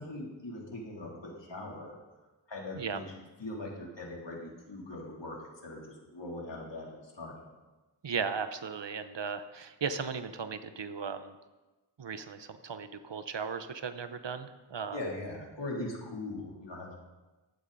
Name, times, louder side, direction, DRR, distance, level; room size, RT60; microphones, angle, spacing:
voice 1, 0.0-1.9 2.5-3.0 3.4-5.4 5.6-7.4 14.9-17.0, left 2 dB, 70° left, -2 dB, 3.4 m, -40 dB
voice 2, 8.0-11.3 12.0-15.0, right 6 dB, 65° right, 10 dB, 1.0 m, -36 dB
15.0 x 12.0 x 4.1 m, 1.2 s
wide cardioid pair, 55°, 45 cm